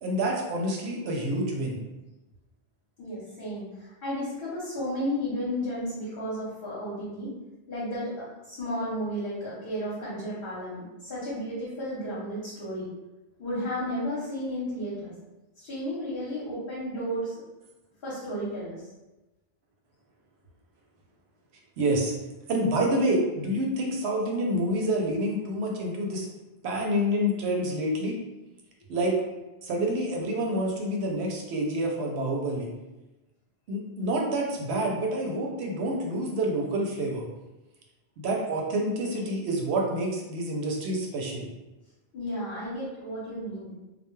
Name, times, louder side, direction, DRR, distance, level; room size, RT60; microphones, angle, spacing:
voice 1, 0.0-1.8 21.8-22.1 22.5-26.3 26.6-28.2 28.9-29.1 29.6-32.7 33.7-37.3 38.2-41.5, right 1 dB, 80° right, 0 dB, 0.8 m, -28 dB
voice 2, 3.0-7.3 7.7-12.9 13.4-15.1 15.6-17.4 18.0-18.8 42.1-43.7, equal, 65° left, -8 dB, 0.9 m, -33 dB
2.2 x 2.2 x 3.0 m, 1.0 s
omnidirectional pair, 1.1 m